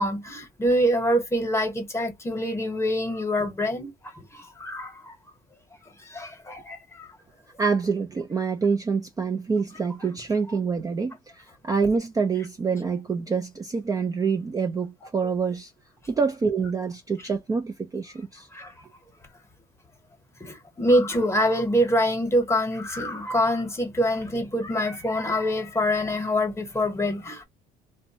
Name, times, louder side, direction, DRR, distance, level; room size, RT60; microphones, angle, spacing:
voice 1, 0.0-5.2 6.0-7.1 18.5-18.7 20.4-27.4, equal, 15° left, 1.0 m, -25 dB
voice 2, 7.6-15.7 16.1-18.5, right 5 dB, 20° right, 0.4 m, -26 dB
2.6 x 2.2 x 2.7 m
cardioid pair, 110°, 17 cm